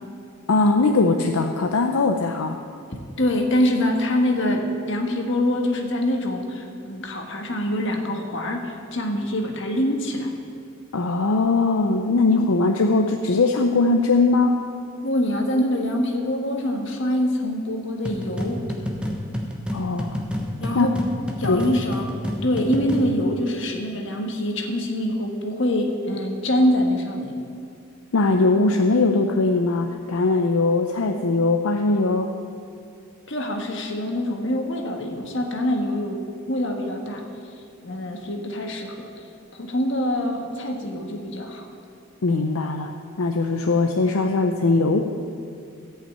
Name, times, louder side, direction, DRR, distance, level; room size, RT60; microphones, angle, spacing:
voice 1, 0.5-2.6 10.9-14.6 19.7-20.3 20.7-20.9 21.5-21.7 28.1-32.3 42.2-45.1, left 3 dB, 75° left, 4 dB, 0.6 m, -20 dB
voice 2, 3.2-10.3 15.0-18.6 20.6-21.0 21.4-22.1 22.4-27.4 33.3-36.2 36.5-37.2 37.8-39.1 39.5-41.7, left 1 dB, 55° left, 2 dB, 1.5 m, -24 dB
sound 1, 18.0-23.2, equal, 5° right, 1.0 m, -29 dB
14.0 x 5.7 x 8.7 m, 2.5 s
head